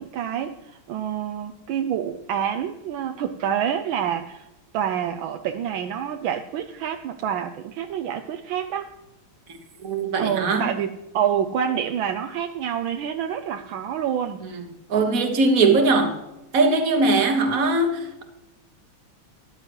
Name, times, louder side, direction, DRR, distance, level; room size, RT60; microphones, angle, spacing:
voice 1, 0.0-4.5 4.7-8.9 10.2-14.4, right 9 dB, 75° right, 5 dB, 1.4 m, -27 dB
voice 2, 9.8-10.7 14.4-14.6 14.9-16.2 16.5-18.2, right 3 dB, 45° right, 5 dB, 1.7 m, -20 dB
13.5 x 10.5 x 3.1 m, 0.95 s
omnidirectional pair, 2.3 m